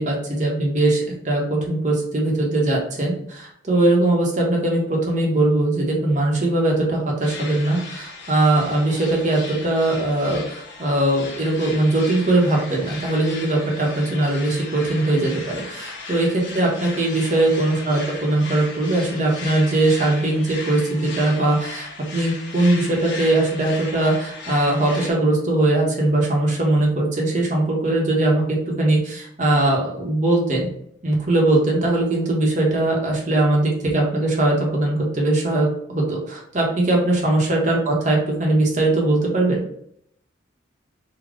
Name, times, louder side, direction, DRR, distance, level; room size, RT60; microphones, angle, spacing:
voice 1, 0.0-28.4 28.8-30.7 31.0-39.6, right 2 dB, 40° right, -2 dB, 1.0 m, -20 dB
sound 1, 7.2-25.1, left 3 dB, 70° left, 0.9 m, -37 dB
3.7 x 2.3 x 3.4 m, 0.71 s
head